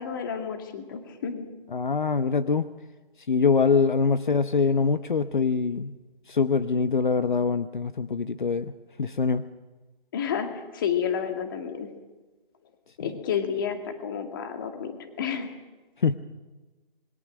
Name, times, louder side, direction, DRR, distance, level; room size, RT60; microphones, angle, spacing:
voice 1, 0.0-1.5 10.1-11.9 13.0-15.5, left 7 dB, 20° left, 6 dB, 2.0 m, -30 dB
voice 2, 1.7-2.7 3.3-5.9 6.3-8.7 9.0-9.5 16.0-16.1, left 5 dB, 55° left, 12 dB, 1.0 m, -24 dB
26.5 x 21.5 x 6.4 m, 1.2 s
figure-of-eight pair, 160°, 29 cm